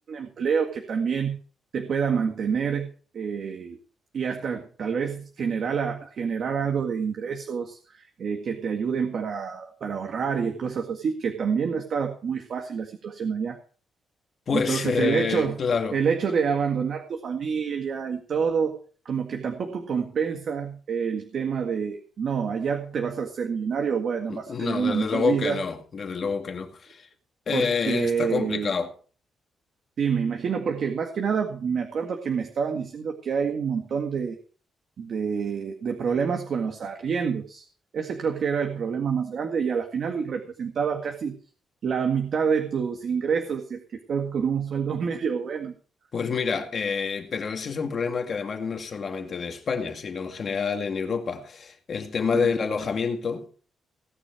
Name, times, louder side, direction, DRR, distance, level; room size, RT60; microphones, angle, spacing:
voice 1, 0.1-1.4 1.7-2.9 3.1-3.8 4.1-13.6 14.5-15.5 15.9-18.8 19.1-25.6 27.5-28.7 30.0-34.4 35.0-37.7 37.9-41.4 41.8-43.8 44.1-45.7 52.3-52.5, right 6 dB, 45° right, 1.9 m, -27 dB
voice 2, 14.5-16.0 24.3-27.1 27.5-28.9 46.1-53.5, left 5 dB, 35° left, 2.2 m, -28 dB
18.0 x 9.9 x 4.6 m
cardioid pair, 175°, 0 cm